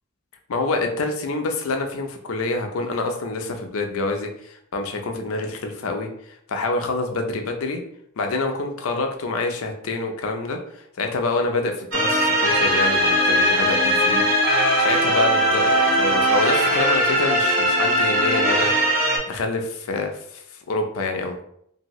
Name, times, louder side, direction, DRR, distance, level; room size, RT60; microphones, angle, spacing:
voice 1, 0.5-6.1 6.5-7.8 8.2-10.6 11.0-14.3 14.8-21.4, left 3 dB, 80° left, 4 dB, 0.5 m, -27 dB
sound 1, 11.9-19.2, equal, 70° right, 1.1 m, -19 dB
2.7 x 2.7 x 3.0 m, 0.71 s
head